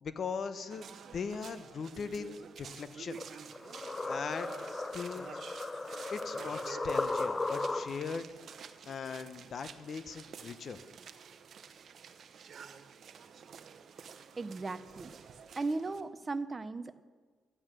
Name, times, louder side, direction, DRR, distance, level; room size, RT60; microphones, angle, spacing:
voice 1, 0.0-3.2 4.1-4.5 4.9-5.4 6.1-8.3 8.9-10.8, left 5 dB, 50° left, 12 dB, 0.8 m, -39 dB
sound 1, 0.7-16.0, right 7 dB, 55° right, 0.8 m, -50 dB
sound 2, 3.1-8.2, left 3 dB, 20° left, 0.4 m, -36 dB
voice 2, 14.4-15.1 15.6-17.0, right 3 dB, 25° right, 11 dB, 0.6 m, -36 dB
12.5 x 8.6 x 6.2 m, 1.5 s
cardioid pair, 90°, 0 cm